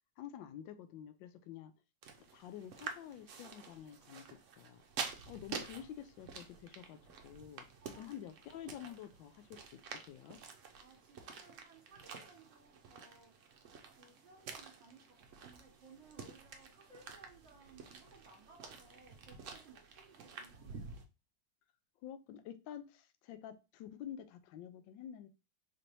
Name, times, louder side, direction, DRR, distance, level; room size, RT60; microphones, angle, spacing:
voice 1, 0.2-1.7 2.3-4.3 4.6-7.7 8.0-9.8 10.1-10.4 22.0-25.3, left 10 dB, 85° left, 1.3 m, -49 dB
sound 1, 2.0-21.0, right 5 dB, 60° right, 0.8 m, -49 dB
voice 2, 7.8-8.3 10.8-13.4 13.9-21.0, right 3 dB, 45° right, 1.4 m, -61 dB
4.2 x 3.2 x 2.6 m
omnidirectional pair, 2.0 m